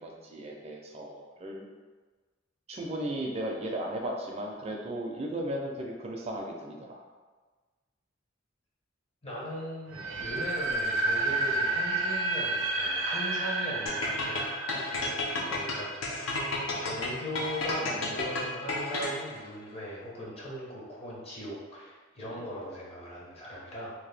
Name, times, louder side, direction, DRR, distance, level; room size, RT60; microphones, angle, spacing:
voice 1, 0.0-1.7 2.7-7.0 10.2-10.4 15.4-15.6 22.3-22.4, right 1 dB, 30° right, 0 dB, 0.4 m, -36 dB
voice 2, 9.2-14.9 15.4-16.4 16.8-23.9, equal, 30° left, -5 dB, 0.7 m, -39 dB
sound 1, 9.9-16.8, right 2 dB, 85° right, 0.5 m, -31 dB
sound 2, 13.9-19.4, left 3 dB, 75° left, 0.5 m, -32 dB
2.8 x 2.1 x 3.3 m, 1.4 s
head